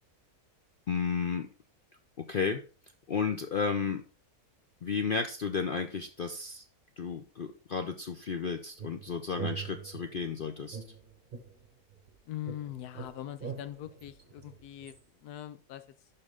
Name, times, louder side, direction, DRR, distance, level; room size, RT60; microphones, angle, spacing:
voice 1, 0.9-1.5 2.3-2.6 3.1-4.0 4.8-6.6 7.0-10.8, left 5 dB, 60° left, 6 dB, 0.5 m, -33 dB
sound 1, 8.8-10.3 10.7-12.2 12.5-15.0, right 7 dB, 35° right, 1.2 m, -43 dB
voice 2, 12.3-15.8, left 12 dB, 85° left, 12 dB, 1.2 m, -42 dB
11.5 x 4.4 x 3.6 m, 0.36 s
omnidirectional pair, 1.6 m